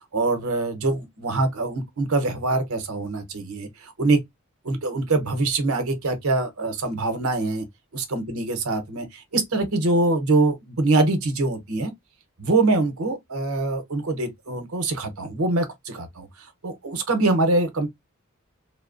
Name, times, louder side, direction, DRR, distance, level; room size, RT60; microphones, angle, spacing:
voice 1, 0.1-4.2 4.6-7.6 7.9-11.9 12.4-17.9, right 2 dB, 90° right, 0.8 m, -24 dB
2.8 x 2.1 x 2.4 m
head